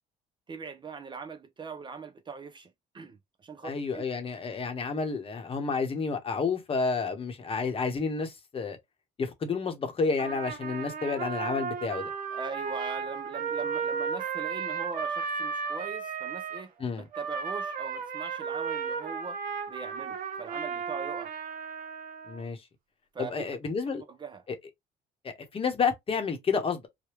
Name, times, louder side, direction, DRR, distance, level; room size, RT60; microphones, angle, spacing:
voice 1, 0.5-4.0 12.3-19.4 19.7-21.3 23.1-23.5 24.1-24.4, right 5 dB, 30° right, 0.4 m, -41 dB
voice 2, 3.6-8.8 9.2-12.1 16.8-17.0 22.3-22.6 23.2-24.0 25.2-26.9, left 5 dB, 35° left, 0.9 m, -30 dB
Trumpet, 10.2-16.6 17.1-22.4, right 6 dB, 55° right, 0.9 m, -34 dB
3.3 x 2.2 x 3.0 m
cardioid pair, 110°, 17 cm